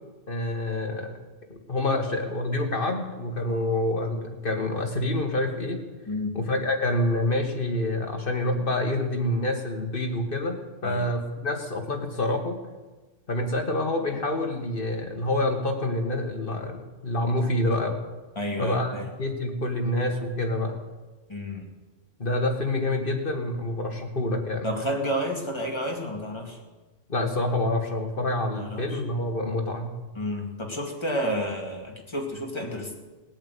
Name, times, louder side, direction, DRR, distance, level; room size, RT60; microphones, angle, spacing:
voice 1, 0.3-1.2 1.5-5.8 6.3-12.6 13.3-18.0 18.6-20.8 22.2-24.7 27.1-30.0, left 1 dB, 45° left, 3 dB, 1.9 m, -27 dB
voice 2, 18.4-19.1 21.3-21.7 24.6-26.6 28.5-29.0 30.1-33.0, equal, 20° left, 0 dB, 2.5 m, -30 dB
18.5 x 8.8 x 8.4 m, 1.2 s
omnidirectional pair, 1.3 m